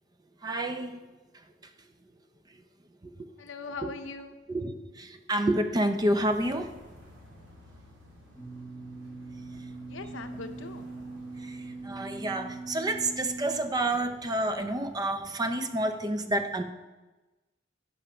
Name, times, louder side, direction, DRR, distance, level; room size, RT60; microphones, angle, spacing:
voice 1, 0.4-1.0 4.5-6.7 11.4-11.6 11.8-16.6, right 1 dB, 20° right, 8 dB, 0.5 m, -29 dB
voice 2, 3.4-4.4 9.8-10.9, left 4 dB, 70° left, 9 dB, 0.6 m, -40 dB
sound 1, 5.9-15.3, equal, 80° right, 2.0 m, -54 dB
sound 2, 8.4-13.6, right 3 dB, ahead, 0.9 m, -41 dB
7.8 x 5.6 x 5.0 m, 1.1 s
head